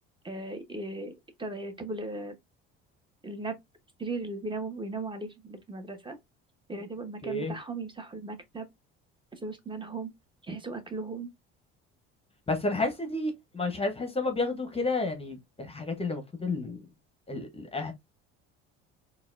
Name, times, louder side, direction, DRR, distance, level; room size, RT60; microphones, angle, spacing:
voice 1, 0.2-1.1 1.4-2.4 3.2-3.6 4.0-6.2 6.7-8.7 9.4-10.1 10.4-11.3, right 2 dB, 15° right, 1.0 m, -37 dB
voice 2, 7.2-7.5 12.5-16.8 17.3-17.9, left 2 dB, 20° left, 0.9 m, -31 dB
3.9 x 2.4 x 2.5 m
hypercardioid pair, 75°, 31 cm